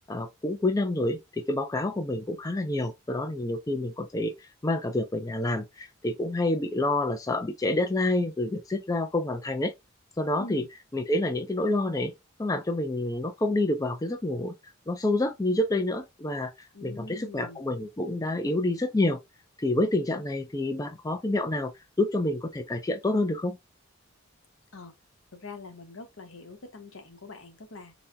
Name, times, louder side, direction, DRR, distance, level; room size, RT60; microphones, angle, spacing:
voice 1, 0.1-9.7 10.2-10.6 10.9-12.1 12.4-19.2 19.6-21.7 22.0-23.6, left 2 dB, 15° left, 0.4 m, -28 dB
voice 2, 16.7-17.6 24.7-24.9 25.3-27.9, left 3 dB, 75° left, 1.0 m, -43 dB
4.1 x 2.2 x 3.4 m
head